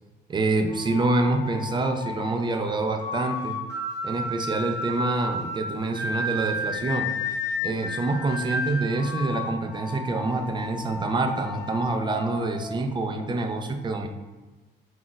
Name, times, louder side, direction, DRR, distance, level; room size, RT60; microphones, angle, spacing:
voice 1, 0.3-3.6 4.0-7.1 7.6-14.1, right 2 dB, 25° right, 5 dB, 0.4 m, -26 dB
sound 1, 0.7-13.5, left 2 dB, 15° left, 0.8 m, -33 dB
2.4 x 2.1 x 3.8 m, 1.2 s
cardioid pair, 90°, 20 cm